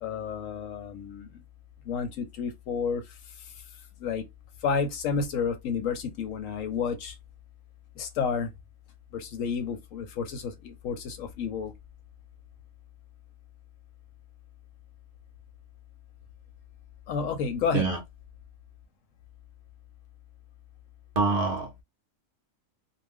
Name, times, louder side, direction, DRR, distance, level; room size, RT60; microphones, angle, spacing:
voice 1, 0.0-1.4 1.8-3.6 4.0-4.3 4.6-7.2 8.0-8.5 9.1-11.7 17.1-17.9, left 6 dB, 70° left, 0.9 m, -31 dB
voice 2, 21.2-21.8, right 3 dB, 55° right, 0.6 m, -26 dB
2.5 x 2.1 x 3.4 m
omnidirectional pair, 1.6 m